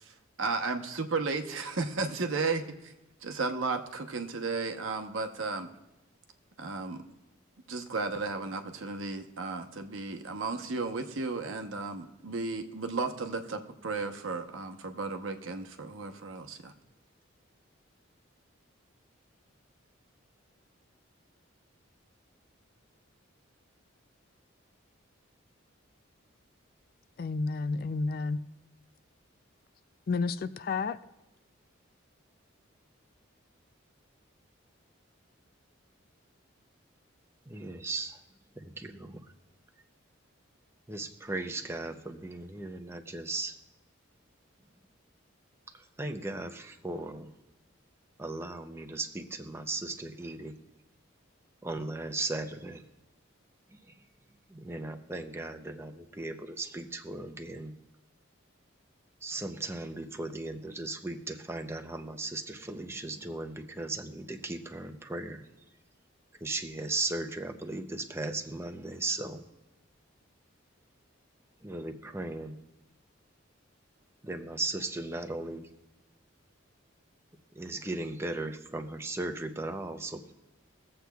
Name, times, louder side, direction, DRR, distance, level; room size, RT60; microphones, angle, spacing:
voice 1, 0.4-2.9 3.2-5.7 6.6-7.0 7.7-16.7, right 4 dB, 75° right, 5 dB, 0.9 m, -34 dB
voice 2, 27.2-28.4 30.1-31.0, left 4 dB, 45° left, 14 dB, 0.3 m, -31 dB
voice 3, 37.5-38.2 38.6-39.3 40.9-43.5 46.0-47.3 48.2-50.5 51.6-52.8 54.5-57.7 59.2-65.4 66.4-69.4 71.6-72.6 74.2-75.7 77.6-80.3, right 2 dB, 15° right, 5 dB, 0.6 m, -37 dB
23.0 x 7.8 x 2.3 m, 0.96 s
head